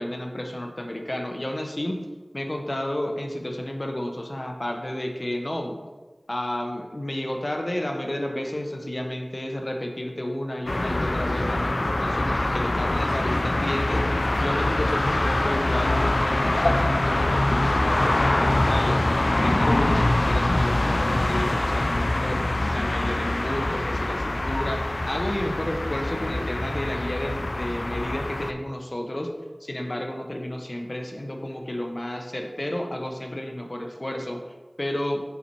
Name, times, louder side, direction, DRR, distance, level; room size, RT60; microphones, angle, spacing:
voice 1, 0.0-2.0 2.3-5.8 6.3-19.0 19.4-29.3 29.6-34.4 34.8-35.2, left 1 dB, 45° left, 3 dB, 0.7 m, -31 dB
sound 1, 10.7-28.5, left 1 dB, 60° left, 0.3 m, -24 dB
5.7 x 4.0 x 4.5 m, 1.3 s
wide cardioid pair, 40°, 0 cm